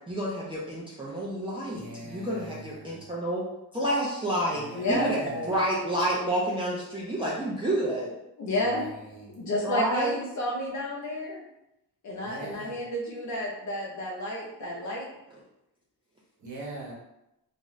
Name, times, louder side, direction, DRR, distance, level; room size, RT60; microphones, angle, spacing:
voice 1, 0.1-3.5 3.7-5.2 5.5-8.1 9.6-10.1, right 1 dB, 15° right, -7 dB, 0.6 m, -29 dB
voice 2, 1.8-3.1 4.5-5.5 8.6-9.3 12.2-12.8 16.4-16.9, right 2 dB, 50° right, -5 dB, 1.2 m, -43 dB
voice 3, 4.7-5.5 8.4-8.9 9.4-11.4 12.0-15.1, left 1 dB, 50° left, -3 dB, 0.7 m, -31 dB
2.5 x 2.4 x 3.1 m, 0.86 s
cardioid pair, 85°, 37 cm